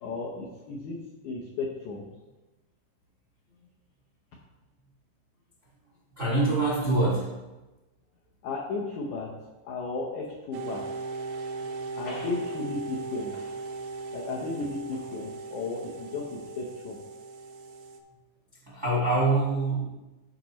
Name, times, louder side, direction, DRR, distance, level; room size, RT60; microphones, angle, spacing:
voice 1, 0.0-2.1 8.4-9.4 9.7-10.9 11.9-13.6 14.1-17.0, left 3 dB, 80° left, -2 dB, 1.7 m, -34 dB
voice 2, 6.2-7.3 18.7-19.8, right 2 dB, 45° right, -5 dB, 0.9 m, -25 dB
sound 1, 10.5-18.0, right 4 dB, 80° right, 2.3 m, -38 dB
13.0 x 5.2 x 3.0 m, 1.1 s
omnidirectional pair, 4.7 m